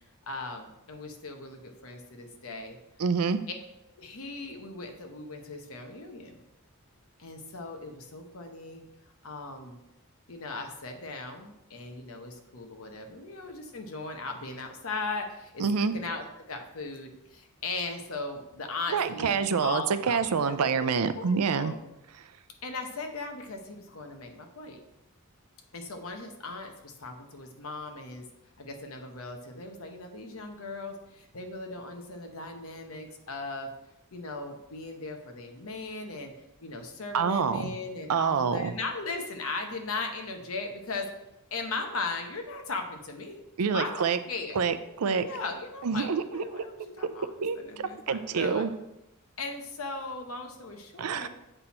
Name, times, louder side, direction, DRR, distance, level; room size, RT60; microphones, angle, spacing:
voice 1, 0.3-2.8 4.0-6.4 7.2-8.8 9.2-9.8 10.3-20.2 20.4-20.5 20.8-21.8 22.6-24.8 25.7-28.2 28.6-33.7 34.1-36.3 36.6-41.1 41.5-43.4 43.7-44.6 45.2-48.7 49.4-51.3, left 3 dB, 65° left, 4 dB, 1.0 m, -38 dB
voice 2, 3.0-3.4 15.6-15.9 18.9-21.7 37.1-37.7 38.1-38.7 43.6-44.2 44.5-45.2 45.8-46.6 47.4-48.7 51.0-51.3, right 6 dB, 85° right, 12 dB, 0.5 m, -27 dB
7.8 x 4.3 x 4.2 m, 0.89 s
head